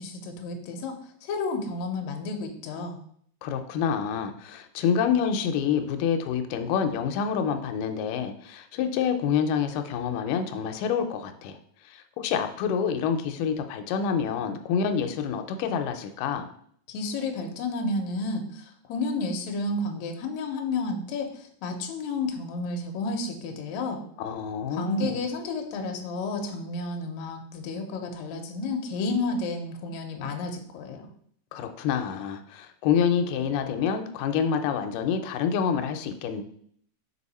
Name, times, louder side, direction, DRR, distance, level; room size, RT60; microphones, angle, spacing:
voice 1, 0.0-3.0 16.9-24.0 24.7-31.1, left 3 dB, 70° left, 3 dB, 1.9 m, -31 dB
voice 2, 3.4-11.6 11.9-16.5 24.2-25.2 31.5-36.4, left 7 dB, 90° left, 7 dB, 2.2 m, -27 dB
5.4 x 4.8 x 4.1 m, 0.63 s
omnidirectional pair, 3.7 m